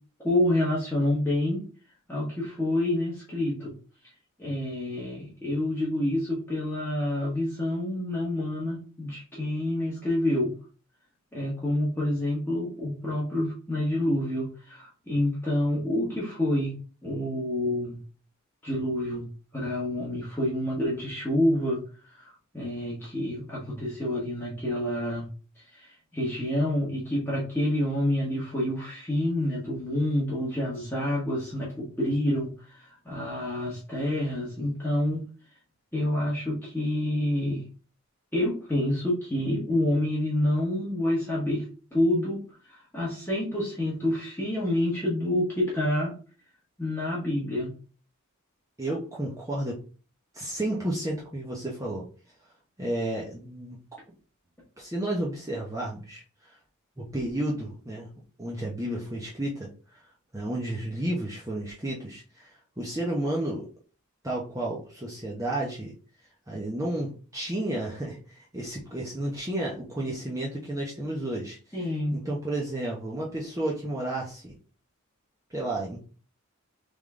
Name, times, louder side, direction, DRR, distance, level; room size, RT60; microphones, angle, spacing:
voice 1, 0.2-1.6 2.1-3.7 4.4-10.5 11.3-16.7 17.0-17.9 18.6-19.3 19.5-21.8 22.2-25.2 25.6-35.2 35.9-37.7 38.3-41.6 41.9-42.4 42.7-46.1 46.8-47.7 71.7-72.2, left 1 dB, 10° left, -7 dB, 1.2 m, -28 dB
voice 2, 48.8-49.8 50.3-52.0 52.8-53.8 54.8-56.6 57.0-58.1 58.4-60.0 60.3-63.7 64.2-65.9 66.5-74.6 75.5-76.0, right 1 dB, 15° right, -4 dB, 0.7 m, -32 dB
3.6 x 3.5 x 3.6 m, 0.38 s
head